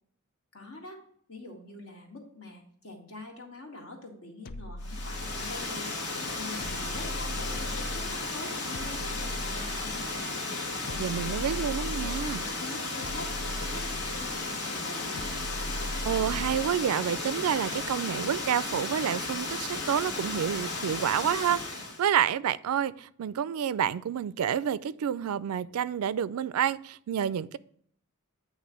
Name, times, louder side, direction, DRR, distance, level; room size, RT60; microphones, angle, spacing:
voice 1, 0.5-1.0 1.3-6.0 6.4-10.3 10.8-11.6 11.9-15.3, left 2 dB, 70° left, 1.8 m, -45 dB
sound 1, 4.5-5.8 6.6-8.2 8.7-10.2 10.9-12.5 13.0-14.4 15.2-16.8, left 1 dB, 45° left, 0.4 m, -38 dB
Water, 4.8-22.0, left 3 dB, 85° left, 1.8 m, -34 dB
voice 2, 11.0-12.4 15.8-27.6, right 9 dB, 85° right, 0.4 m, -29 dB
8.7 x 3.2 x 6.2 m
head